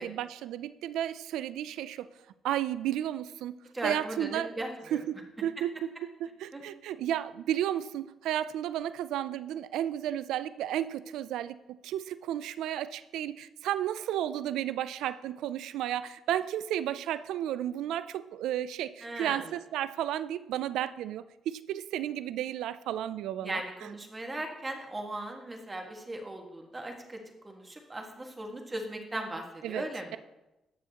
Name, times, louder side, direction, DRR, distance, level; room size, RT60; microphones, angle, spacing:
voice 1, 0.0-2.1 2.4-3.6 3.8-5.9 6.2-23.9 29.6-29.9, right 11 dB, 85° right, 15 dB, 0.3 m, -33 dB
voice 2, 3.7-5.0 6.5-6.6 19.0-19.4 23.4-27.2 27.4-30.2, right 1 dB, 20° right, 2 dB, 1.6 m, -38 dB
12.0 x 7.2 x 2.9 m, 0.97 s
cardioid pair, 90°, 0 cm